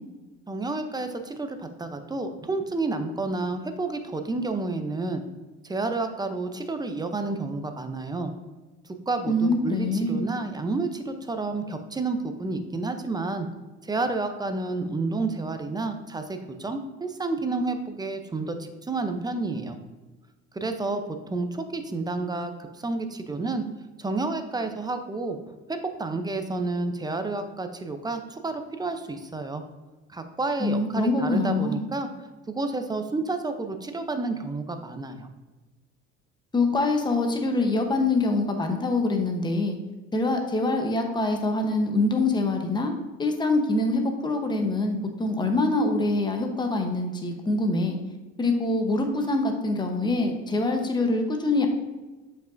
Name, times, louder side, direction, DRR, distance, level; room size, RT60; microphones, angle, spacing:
voice 1, 0.5-5.2 5.6-8.3 9.1-13.5 13.8-19.8 20.5-23.6 24.0-29.6 30.1-32.1 32.5-35.3, right 3 dB, 15° right, 7 dB, 0.6 m, -30 dB
voice 2, 9.3-10.2 30.6-31.8 36.5-39.8 40.1-42.9 43.2-48.0 48.4-51.7, left 2 dB, 15° left, 4 dB, 0.9 m, -24 dB
7.3 x 5.5 x 2.6 m, 1.2 s
cardioid pair, 105°, 30 cm